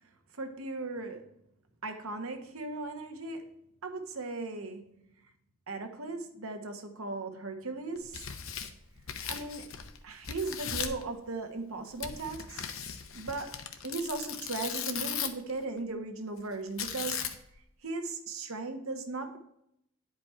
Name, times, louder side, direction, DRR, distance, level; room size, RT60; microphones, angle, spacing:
voice 1, 0.3-1.3 1.8-3.5 3.8-4.9 5.7-8.3 9.3-12.7 13.1-13.6 13.8-17.3 17.8-19.4, right 3 dB, 70° right, 5 dB, 1.2 m, -37 dB
Tearing, 8.0-10.0 10.2-11.0 12.0-15.5 16.8-17.6, left 8 dB, 65° left, 0.8 m, -37 dB
9.7 x 5.2 x 4.4 m, 0.77 s
head